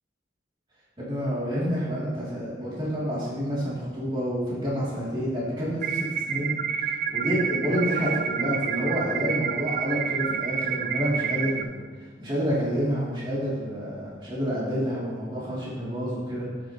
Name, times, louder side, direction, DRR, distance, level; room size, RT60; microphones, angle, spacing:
voice 1, 1.0-11.8 12.2-16.5, equal, 25° right, -8 dB, 2.9 m, -29 dB
sound 1, 5.8-11.6, right 7 dB, 45° right, 0.5 m, -29 dB
13.5 x 8.6 x 3.1 m, 1.5 s
head